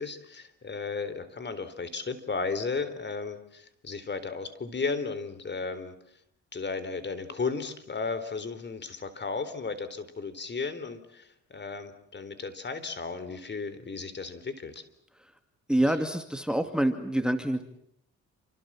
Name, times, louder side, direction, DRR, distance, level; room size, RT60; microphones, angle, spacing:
voice 1, 0.0-5.9 6.5-14.8, left 4 dB, 35° left, 13 dB, 3.9 m, -34 dB
voice 2, 15.7-17.6, right 1 dB, 5° right, 8 dB, 2.4 m, -27 dB
29.5 x 26.0 x 7.6 m, 0.69 s
cardioid pair, 90°, 30 cm